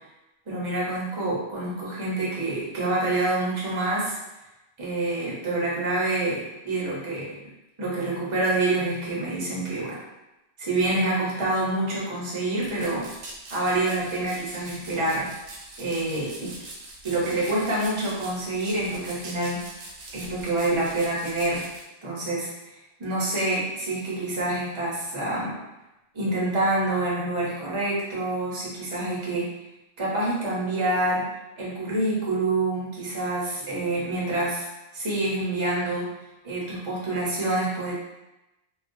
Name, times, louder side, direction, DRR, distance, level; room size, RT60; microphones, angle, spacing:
voice 1, 0.5-4.2 4.8-7.4 7.8-10.0 10.6-13.1 13.5-15.3 15.8-16.5 17.0-19.6 20.1-21.7 22.0-25.6 26.1-29.5 30.0-31.3 31.6-34.7 34.9-36.1 36.4-37.9, right 2 dB, 30° right, -6 dB, 0.6 m, -27 dB
sound 1, 12.6-21.8, right 2 dB, 85° right, 0.9 m, -43 dB
2.3 x 2.2 x 2.5 m, 0.97 s
omnidirectional pair, 1.2 m